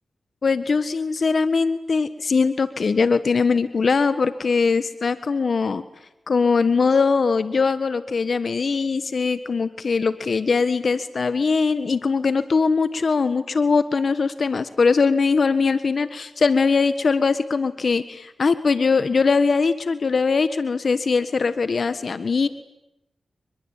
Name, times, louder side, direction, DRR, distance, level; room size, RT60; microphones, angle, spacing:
voice 1, 0.4-5.8 6.3-22.5, left 4 dB, 65° left, 12 dB, 1.5 m, -21 dB
27.5 x 22.0 x 9.1 m, 0.87 s
cardioid pair, 55°, 0 cm